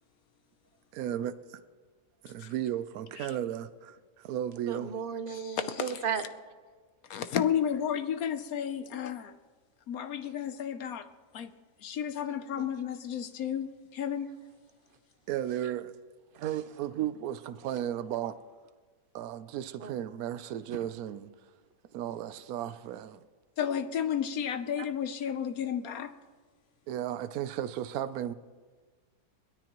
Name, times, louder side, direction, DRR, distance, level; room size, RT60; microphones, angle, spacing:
voice 1, 0.9-1.3 2.2-4.9 15.3-16.0 16.3-18.3 19.1-21.3 21.9-23.2 24.8-24.9 26.9-28.3, right 11 dB, 70° right, 1.0 m, -34 dB
voice 2, 4.7-6.2 12.6-12.7 15.6-15.7 19.8-19.9 20.7-20.8, right 7 dB, 50° right, 0.7 m, -35 dB
voice 3, 5.3-5.9 7.1-9.3 9.9-11.1 11.3-11.5 11.8-14.3 23.6-26.1, left 8 dB, 65° left, 1.1 m, -32 dB
22.5 x 17.0 x 3.0 m
omnidirectional pair, 1.7 m